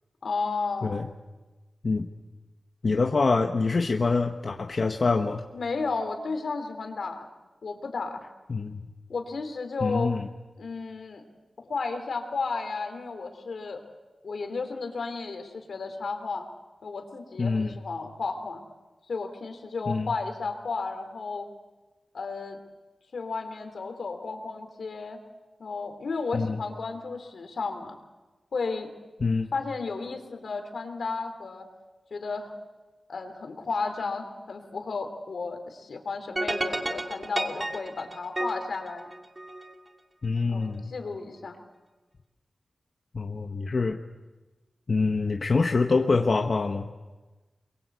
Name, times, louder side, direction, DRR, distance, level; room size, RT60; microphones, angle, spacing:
voice 1, 0.2-1.0 5.5-7.3 7.6-8.2 9.1-10.1 10.6-11.2 11.6-13.8 14.2-16.5 16.8-18.6 19.1-21.5 22.1-22.6 23.1-25.2 25.6-28.0 28.5-28.9 29.5-31.7 32.1-32.5 33.1-39.1 40.5-41.6, left 4 dB, 75° left, 6 dB, 3.6 m, -33 dB
voice 2, 2.8-5.4 8.5-8.9 9.8-10.3 17.4-17.8 19.9-20.1 26.3-26.6 29.2-29.5 40.2-40.9 43.1-44.0 44.9-46.9, left 4 dB, 50° left, 3 dB, 1.2 m, -25 dB
sound 1, 36.4-39.7, right 1 dB, 25° right, 2.5 m, -31 dB
28.5 x 22.5 x 8.2 m, 1.2 s
wide cardioid pair, 115°, 0 cm